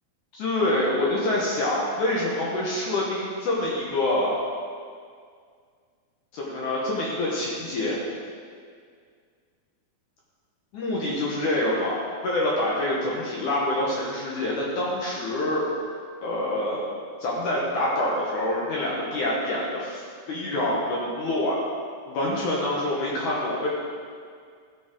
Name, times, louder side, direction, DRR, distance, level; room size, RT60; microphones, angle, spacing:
voice 1, 0.3-4.3 6.3-8.0 10.7-12.0 12.2-15.7 16.2-16.9 17.2-21.6 22.1-23.7, left 1 dB, 65° left, -5 dB, 2.3 m, -26 dB
13.5 x 7.1 x 3.7 m, 2.1 s
omnidirectional pair, 4.3 m